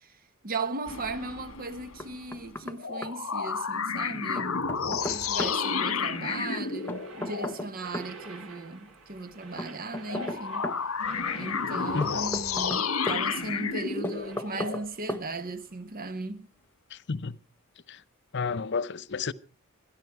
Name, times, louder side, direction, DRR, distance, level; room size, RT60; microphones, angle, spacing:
voice 1, 0.0-10.7 11.3-16.5, right 3 dB, 45° right, 1.1 m, -37 dB
sound 1, 0.9-2.5 2.8-7.6 10.0-14.8, left 5 dB, 80° left, 1.6 m, -31 dB
Knock, 2.0-2.8 3.0-3.1 4.3-5.6 6.9-8.1 9.6-10.8 12.0-13.2 14.0-14.8 15.1-15.2, left 1 dB, 10° left, 1.1 m, -35 dB
sound 2, 5.0-14.4, right 3 dB, 80° right, 3.7 m, -49 dB
voice 2, 11.9-12.3 16.9-17.4 17.9-18.0 18.3-19.3, left 5 dB, 55° left, 0.7 m, -31 dB
26.5 x 11.0 x 4.6 m
head